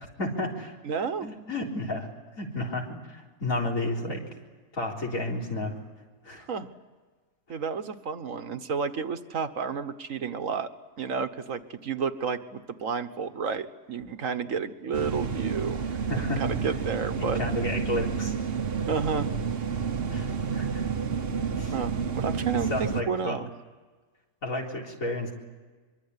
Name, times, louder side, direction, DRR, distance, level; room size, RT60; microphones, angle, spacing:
voice 1, 0.2-0.7 1.2-2.1 2.4-4.2 4.7-5.8 6.2-6.5 16.1-16.4 17.2-18.3 20.1-20.9 21.6-21.7 22.7-23.4 24.4-25.3, left 1 dB, 70° left, -1 dB, 4.4 m, -31 dB
voice 2, 0.8-1.3 6.5-6.7 7.5-10.7 11.0-15.8 16.1-17.4 18.9-19.3 21.7-23.5, right 6 dB, 70° right, 10 dB, 1.6 m, -31 dB
sound 1, 14.9-23.0, right 6 dB, 45° right, 1.2 m, -30 dB
24.0 x 24.0 x 9.8 m, 1.4 s
omnidirectional pair, 1.5 m